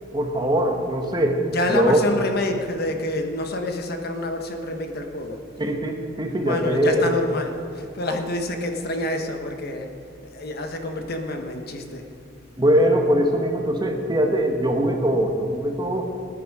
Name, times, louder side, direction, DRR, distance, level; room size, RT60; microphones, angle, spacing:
voice 1, 0.1-1.4 1.7-2.0 5.6-7.1 12.6-16.1, equal, 20° right, 3 dB, 1.2 m, -21 dB
voice 2, 1.4-5.4 6.4-9.9 10.3-12.1, left 1 dB, 50° left, 4 dB, 1.3 m, -27 dB
19.5 x 10.0 x 4.9 m, 2.4 s
head